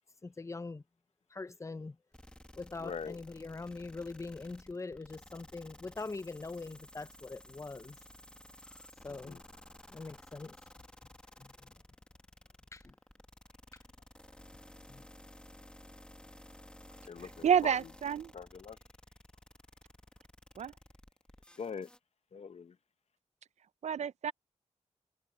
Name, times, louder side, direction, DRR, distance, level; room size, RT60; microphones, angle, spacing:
voice 1, 0.2-0.8 1.3-2.0 2.6-8.0 9.0-9.4 9.9-10.6 11.4-11.8 12.7-12.9 14.9-15.0, left 3 dB, 25° left, 0.5 m, -43 dB
sound 1, 2.1-22.0, left 1 dB, 10° left, 1.6 m, -55 dB
voice 2, 2.8-3.2 9.2-9.4 17.1-17.8 18.3-18.8 21.6-21.9 22.3-22.7, left 6 dB, 60° left, 0.7 m, -42 dB
voice 3, 17.4-18.3 20.6-20.7 23.8-24.3, right 8 dB, 70° right, 0.4 m, -29 dB
open air
wide cardioid pair, 130°, 12 cm